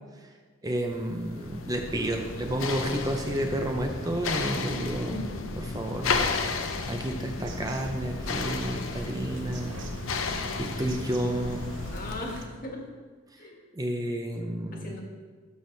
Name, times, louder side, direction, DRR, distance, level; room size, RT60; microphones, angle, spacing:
voice 1, 0.6-5.2 5.6-9.8 10.2-11.7 13.7-14.9, right 1 dB, 20° right, 3 dB, 0.6 m, -31 dB
sound 1, 0.9-12.4, left 4 dB, 90° left, 0.7 m, -33 dB
voice 2, 4.7-5.4 11.9-12.8 13.4-13.6 14.7-15.0, left 2 dB, 45° left, 0 dB, 1.6 m, -38 dB
Bird vocalization bird call bird song, 7.4-12.4, right 1 dB, 65° right, 0.9 m, -43 dB
12.5 x 6.0 x 3.3 m, 1.5 s
head